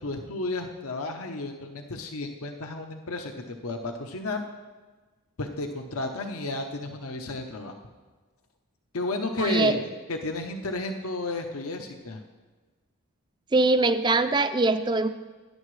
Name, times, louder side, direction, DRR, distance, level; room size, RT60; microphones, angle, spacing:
voice 1, 0.0-4.4 5.4-7.7 8.9-12.2, left 2 dB, 85° left, 4 dB, 0.8 m, -32 dB
voice 2, 9.4-9.7 13.5-15.1, right 3 dB, 20° right, 10 dB, 0.4 m, -22 dB
17.0 x 10.0 x 3.2 m, 1.3 s
head